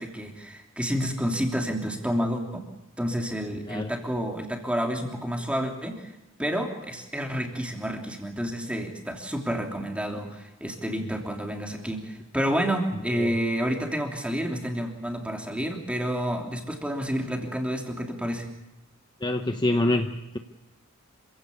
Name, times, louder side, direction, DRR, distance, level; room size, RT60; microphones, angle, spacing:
voice 1, 0.0-2.6 3.0-6.1 6.4-18.5, equal, 5° right, 2 dB, 3.1 m, -29 dB
voice 2, 19.2-20.4, left 1 dB, 20° left, 6 dB, 0.9 m, -26 dB
27.0 x 16.5 x 8.4 m, 0.97 s
head